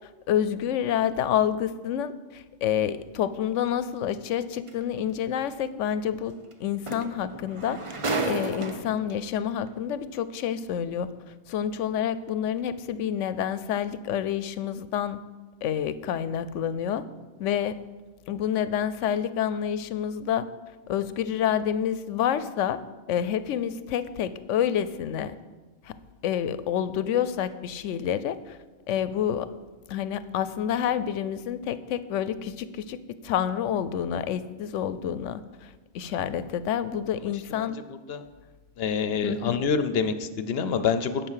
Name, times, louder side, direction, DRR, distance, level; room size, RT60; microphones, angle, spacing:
voice 1, 0.3-6.3 6.6-8.0 8.2-11.1 11.5-15.2 15.6-17.0 17.4-17.8 18.3-20.5 20.9-22.8 23.1-25.4 25.8-25.9 26.2-28.6 28.9-29.5 29.9-37.8 39.2-39.6, left 9 dB, 85° left, 14 dB, 0.9 m, -28 dB
sound 1, 4.7-4.8 6.5-6.6 6.9-9.1 10.0-10.1, right 3 dB, 30° right, 0.7 m, -31 dB
voice 2, 38.8-41.3, left 6 dB, 60° left, 10 dB, 0.8 m, -26 dB
11.0 x 7.3 x 5.7 m, 1.3 s
omnidirectional pair, 1.2 m